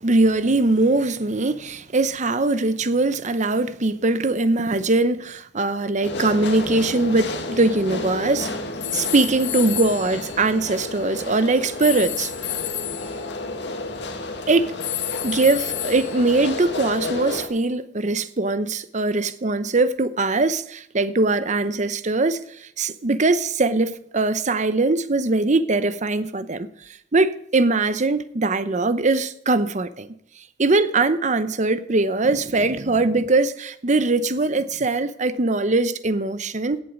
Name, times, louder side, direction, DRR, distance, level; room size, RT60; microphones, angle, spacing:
voice 1, 0.0-8.5 8.9-12.3 14.5-14.7 15.2-26.7 27.1-30.1 30.6-36.8, right 2 dB, 40° right, 0.8 m, -21 dB
sound 1, 6.0-17.5, left 2 dB, 70° left, 1.8 m, -31 dB
sound 2, 8.8-11.0 11.8-13.2 14.8-16.5, left 13 dB, 85° left, 1.5 m, -31 dB
17.0 x 7.5 x 5.3 m
head